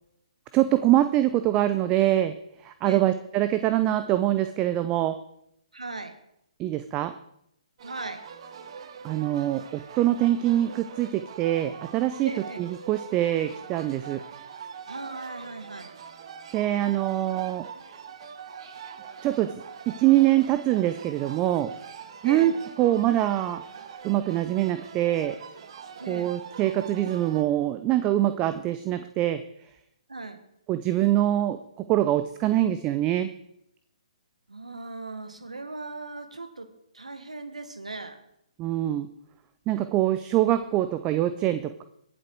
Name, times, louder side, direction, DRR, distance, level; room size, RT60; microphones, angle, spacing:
voice 1, 0.5-2.3 2.6-5.1 6.6-7.1 9.0-12.3 12.6-14.2 16.5-17.7 19.2-19.5 19.9-21.7 22.2-22.5 22.8-23.6 24.0-25.4 26.1-29.4 30.7-31.6 31.9-33.3 38.6-39.1 39.7-41.8, right 13 dB, 25° right, 11 dB, 0.6 m, -24 dB
voice 2, 5.7-6.2 7.8-8.2 12.2-12.6 14.9-16.0 22.2-22.6 26.0-26.4 30.1-30.5 34.5-36.7 36.9-38.2, right 3 dB, 85° right, 9 dB, 1.6 m, -38 dB
sound 1, 7.8-27.4, right 6 dB, 50° right, 1.2 m, -43 dB
21.0 x 7.9 x 4.6 m, 0.76 s
figure-of-eight pair, 130°, 4 cm